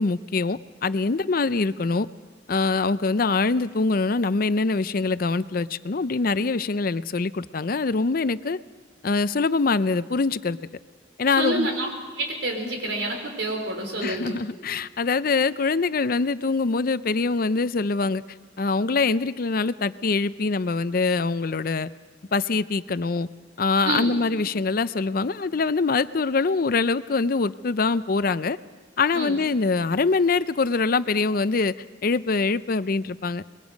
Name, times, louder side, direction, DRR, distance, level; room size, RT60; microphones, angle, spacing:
voice 1, 0.0-2.1 2.5-8.6 9.0-10.6 11.2-11.7 14.0-18.2 18.6-21.9 22.3-23.3 23.6-28.6 29.0-31.7 32.0-33.4, left 4 dB, 50° left, 15 dB, 0.6 m, -24 dB
voice 2, 11.4-11.9 12.2-14.4 23.8-24.1 29.1-29.4, right 2 dB, 85° right, 2 dB, 4.7 m, -28 dB
24.5 x 21.5 x 5.2 m, 1.4 s
head